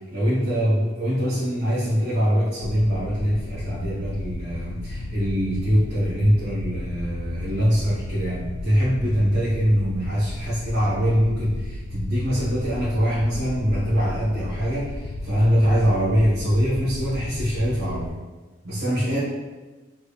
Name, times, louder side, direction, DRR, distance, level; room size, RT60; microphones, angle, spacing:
voice 1, 0.1-18.2 18.6-19.2, equal, 60° right, -11 dB, 1.0 m, -23 dB
sound 1, 2.6-18.1, left 1 dB, 70° left, 0.4 m, -34 dB
3.5 x 3.1 x 2.3 m, 1.3 s
head